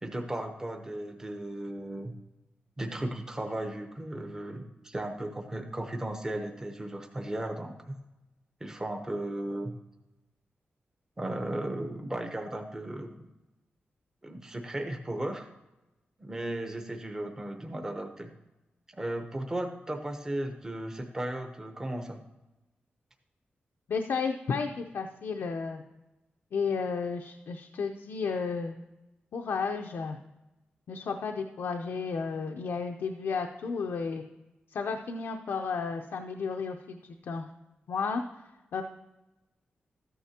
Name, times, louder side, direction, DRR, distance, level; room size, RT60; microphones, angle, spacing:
voice 1, 0.0-2.1 2.8-7.9 8.6-9.7 11.2-13.2 14.2-15.5 16.2-18.3 18.9-22.2, right 1 dB, 15° right, 4 dB, 0.8 m, -35 dB
voice 2, 23.9-25.8 26.5-28.8 29.3-30.2 30.9-34.2 34.7-37.0 37.2-37.5 37.9-38.2 38.7-38.8, left 5 dB, 85° left, 3 dB, 0.6 m, -32 dB
13.5 x 9.3 x 2.8 m, 1.0 s
wide cardioid pair, 175°, 4 cm